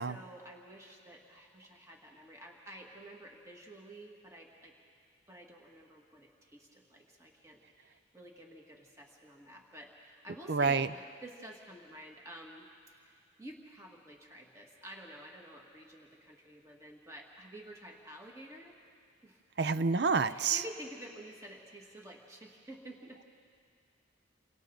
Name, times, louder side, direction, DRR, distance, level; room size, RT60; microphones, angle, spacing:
voice 1, 0.0-4.7 5.3-18.7 19.2-19.4 20.3-23.2, right 1 dB, 15° right, 0 dB, 1.9 m, -50 dB
voice 2, 10.5-10.9 19.6-20.6, right 4 dB, 60° right, 14 dB, 0.5 m, -28 dB
29.0 x 24.5 x 3.9 m, 2.2 s
head